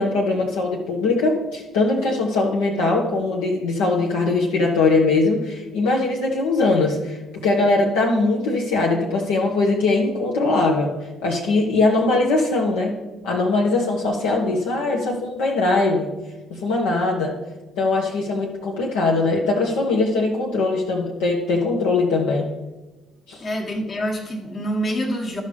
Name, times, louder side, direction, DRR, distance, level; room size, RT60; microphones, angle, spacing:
voice 1, 0.0-10.9 11.2-12.9 13.2-16.1 16.5-17.3 17.8-22.5 23.3-23.4, left 3 dB, 70° left, -2 dB, 0.9 m, -21 dB
voice 2, 23.4-25.4, equal, 40° left, 2 dB, 1.4 m, -26 dB
13.0 x 5.5 x 3.3 m, 1.1 s
figure-of-eight pair, 45°, 0 cm